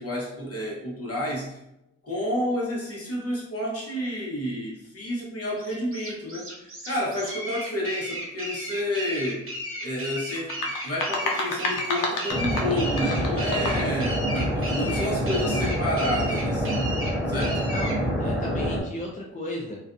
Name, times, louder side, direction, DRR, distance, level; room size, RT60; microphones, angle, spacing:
voice 1, 0.0-1.6 2.0-9.5 9.8-10.6 10.8-16.9 17.3-17.6, left 1 dB, 45° left, -4 dB, 1.0 m, -30 dB
sound 1, 5.6-18.0, equal, 40° right, 0.9 m, -35 dB
sound 2, 10.4-14.0, left 2 dB, 75° left, 0.6 m, -30 dB
sound 3, 12.3-18.8, equal, 5° right, 0.7 m, -27 dB
voice 2, 17.7-19.8, left 1 dB, 25° left, -1 dB, 0.4 m, -34 dB
2.5 x 2.3 x 2.5 m, 0.87 s
cardioid pair, 70°, 32 cm